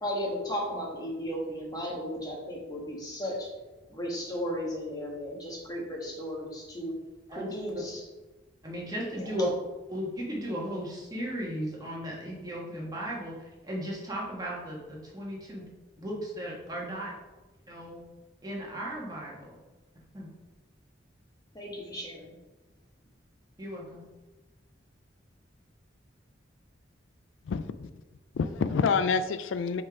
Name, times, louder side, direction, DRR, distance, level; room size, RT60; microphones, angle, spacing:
voice 1, 0.0-3.5 3.9-6.9 7.3-8.0 9.1-9.3 21.5-22.3, equal, 20° left, -2 dB, 1.4 m, -35 dB
voice 2, 8.6-9.5 9.9-13.3 13.6-15.6 16.0-17.1 17.7-18.0 18.4-19.6 20.1-20.3 23.6-24.0, equal, 20° right, -4 dB, 1.6 m, -35 dB
voice 3, 27.4-27.9 28.3-29.8, left 5 dB, 90° left, 11 dB, 0.4 m, -27 dB
5.1 x 3.9 x 4.8 m, 1.2 s
head